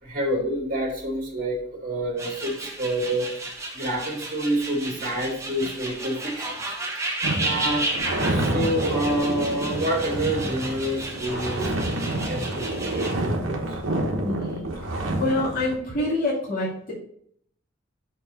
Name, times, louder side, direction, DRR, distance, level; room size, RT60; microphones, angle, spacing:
voice 1, 0.0-3.3 3.7-7.1 7.4-7.9 8.2-11.6 12.0-13.8, right 1 dB, 45° right, -1 dB, 2.5 m, -28 dB
sound 1, 2.2-13.1, right 2 dB, 15° right, 0.9 m, -33 dB
sound 2, 7.2-15.8, right 1 dB, 80° right, 1.2 m, -28 dB
voice 2, 14.2-14.7 15.2-16.9, left 2 dB, 45° left, -8 dB, 2.6 m, -26 dB
6.7 x 4.6 x 4.1 m, 0.65 s
head